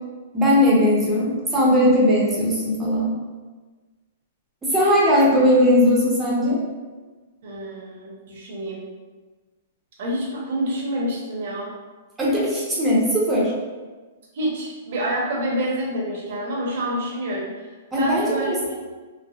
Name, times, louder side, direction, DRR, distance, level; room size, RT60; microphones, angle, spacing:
voice 1, 0.3-3.1 4.6-6.6 12.2-13.5 17.9-18.8, left 1 dB, 15° right, -5 dB, 0.7 m, -19 dB
voice 2, 7.4-8.8 10.0-11.7 14.3-17.7 18.0-18.5, right 1 dB, 60° right, -3 dB, 0.8 m, -27 dB
3.3 x 2.0 x 2.4 m, 1.3 s
hypercardioid pair, 140°, 0 cm